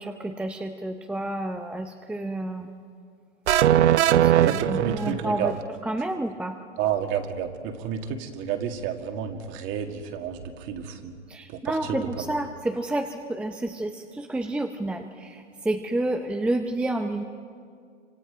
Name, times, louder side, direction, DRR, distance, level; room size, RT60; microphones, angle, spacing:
voice 1, 0.0-2.7 4.1-5.6 5.8-6.6 11.3-17.2, right 1 dB, 5° right, 5 dB, 0.7 m, -30 dB
sound 1, 3.5-5.5, right 11 dB, 65° right, 0.8 m, -20 dB
voice 2, 4.4-5.6 6.8-11.1 11.5-12.3, right 8 dB, 35° right, 5 dB, 2.1 m, -30 dB
28.0 x 26.0 x 5.0 m, 2.2 s
hypercardioid pair, 120°, 36 cm